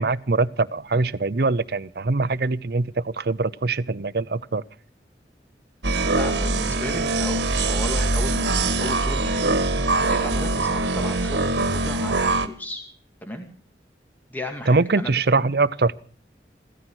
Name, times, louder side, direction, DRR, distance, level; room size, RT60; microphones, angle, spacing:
voice 1, 0.0-4.6 14.7-16.0, right 3 dB, 60° right, 16 dB, 0.7 m, -23 dB
sound 1, 5.8-12.5, right 2 dB, 80° right, 1.5 m, -23 dB
voice 2, 6.1-12.8 13.2-13.5 14.3-15.1, left 1 dB, 10° left, 4 dB, 2.2 m, -34 dB
16.5 x 14.0 x 6.2 m, 0.42 s
head